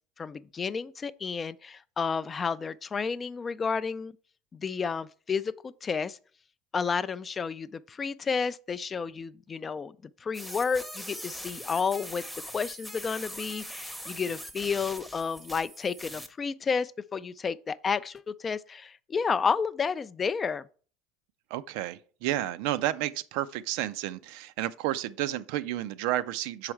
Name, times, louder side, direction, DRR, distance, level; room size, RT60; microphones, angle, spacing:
voice 1, 0.2-4.1 4.5-6.2 6.7-9.9 10.2-12.2 12.5-20.6, left 5 dB, 25° left, 0.3 m, -31 dB
sound 1, 10.3-16.3, equal, ahead, 0.7 m, -41 dB
voice 2, 21.5-26.7, right 14 dB, 75° right, 0.4 m, -31 dB
6.2 x 4.8 x 4.5 m
supercardioid pair, 120°, 0 cm